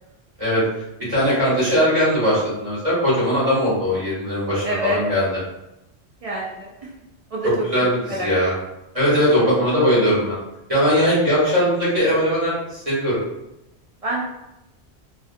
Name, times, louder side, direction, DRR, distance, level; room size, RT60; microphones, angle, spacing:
voice 1, 1.1-5.3 7.7-8.5 8.9-10.4 10.7-13.2, equal, 30° right, -9 dB, 1.1 m, -19 dB
voice 2, 4.6-5.0 6.2-6.7 7.3-8.5 14.0-14.2, right 1 dB, 60° right, -5 dB, 0.3 m, -27 dB
2.4 x 2.3 x 2.4 m, 0.92 s
omnidirectional pair, 1.2 m